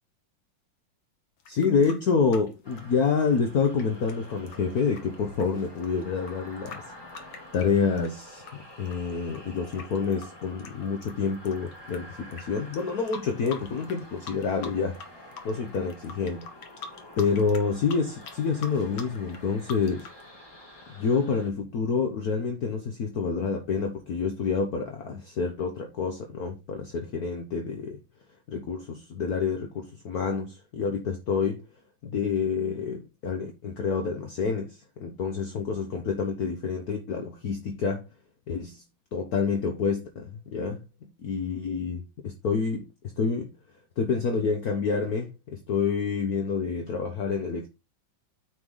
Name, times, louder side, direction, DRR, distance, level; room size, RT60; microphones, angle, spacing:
sound 1, 1.4-8.5 8.9-12.0 12.3-12.4 12.7-14.0 14.3-15.1 15.3-20.2, left 5 dB, 85° left, 2.1 m, -44 dB
voice 1, 1.5-6.8 7.5-15.0 15.4-16.5 17.2-20.1 21.0-28.0 28.5-31.6 32.0-38.1 38.5-38.8 39.1-40.8 41.2-42.9 43.2-43.5 44.0-47.7, left 5 dB, 55° left, 1.4 m, -28 dB
sound 2, 2.6-21.5, left 1 dB, 10° left, 3.2 m, -48 dB
9.2 x 5.1 x 3.9 m
omnidirectional pair, 2.2 m